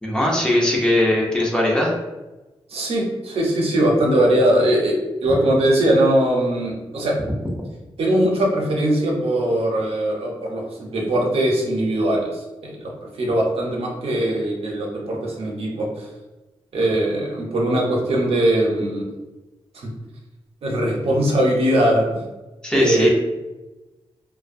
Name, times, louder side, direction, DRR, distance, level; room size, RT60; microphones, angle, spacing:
voice 1, 0.0-1.9 22.6-23.1, left 1 dB, 10° left, -3 dB, 0.5 m, -19 dB
voice 2, 2.7-4.9 5.2-7.2 8.0-16.1 16.7-19.0 19.7-19.9 20.6-22.2 22.7-23.1, right 1 dB, 80° right, -1 dB, 0.6 m, -20 dB
2.5 x 2.1 x 2.5 m, 1.1 s
wide cardioid pair, 130°, 10 cm